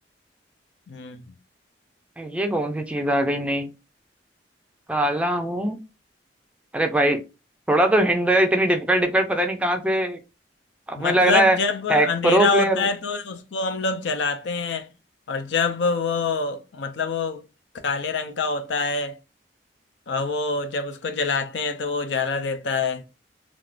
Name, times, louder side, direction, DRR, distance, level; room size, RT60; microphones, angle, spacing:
voice 1, 0.9-1.4 11.0-14.9 15.3-17.4 17.8-19.2 20.1-23.0, left 4 dB, 70° left, 0.5 m, -25 dB
voice 2, 2.2-3.7 4.9-5.8 6.7-7.2 7.7-10.2 10.9-11.6 11.9-12.9, right 1 dB, 5° right, 0.4 m, -21 dB
3.4 x 2.4 x 2.4 m
head